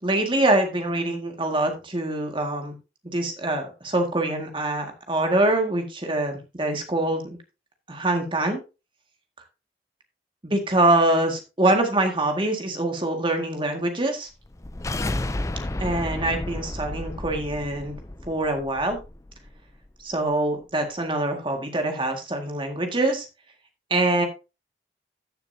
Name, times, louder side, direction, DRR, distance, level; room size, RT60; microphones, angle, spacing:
voice 1, 0.0-2.8 3.0-7.4 7.9-8.6 10.4-14.3 15.8-18.0 18.3-19.0 20.0-23.3 23.9-24.2, right 2 dB, 25° right, 4 dB, 1.9 m, -24 dB
sound 1, 14.4-19.5, left 1 dB, 15° left, 0.4 m, -32 dB
14.0 x 6.9 x 2.7 m, 0.28 s
head